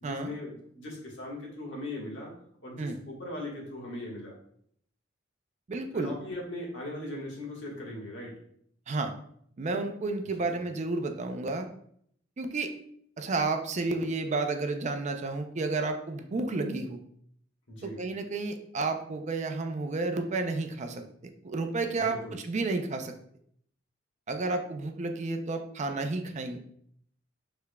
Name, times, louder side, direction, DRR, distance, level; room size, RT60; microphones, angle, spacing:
voice 1, 0.0-2.3 2.6-4.4 5.9-8.3 17.7-18.0 22.0-22.4, left 1 dB, 65° left, -2 dB, 1.4 m, -39 dB
voice 2, 5.7-6.1 8.9-9.1 9.6-11.7 12.4-12.7 13.2-17.0 17.8-21.0 21.4-23.1 24.3-26.6, right 3 dB, 35° right, 6 dB, 0.4 m, -31 dB
6.6 x 3.4 x 2.2 m, 0.67 s
head